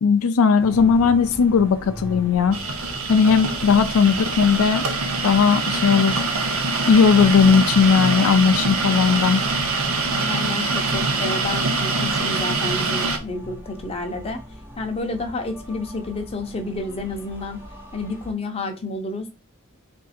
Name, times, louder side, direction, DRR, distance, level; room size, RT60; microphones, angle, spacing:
voice 1, 0.0-2.6 3.1-4.8 5.2-6.2 6.5-9.4, left 6 dB, 80° left, 0.4 m, -17 dB
sound 1, 0.6-18.3, equal, 10° right, 0.8 m, -40 dB
sound 2, 2.5-13.2, right 3 dB, 75° right, 0.7 m, -24 dB
voice 2, 10.2-14.4 14.8-17.6 17.9-19.3, left 2 dB, 30° left, 0.7 m, -30 dB
3.6 x 2.6 x 4.1 m
head